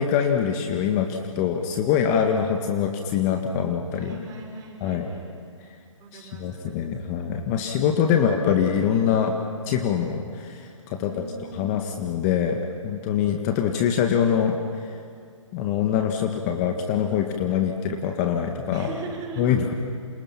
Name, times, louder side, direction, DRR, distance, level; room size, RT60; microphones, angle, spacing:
voice 1, 0.0-4.1 4.8-5.1 6.1-9.4 9.7-11.1 11.5-14.6 15.5-18.9 19.4-19.7, left 8 dB, 30° left, 4 dB, 1.7 m, -24 dB
voice 2, 3.8-5.3 6.0-7.2 8.1-8.2 11.0-11.7 18.7-19.6, right 3 dB, 20° right, 0 dB, 5.6 m, -40 dB
30.0 x 27.5 x 6.0 m, 2.2 s
figure-of-eight pair, 130°, 17 cm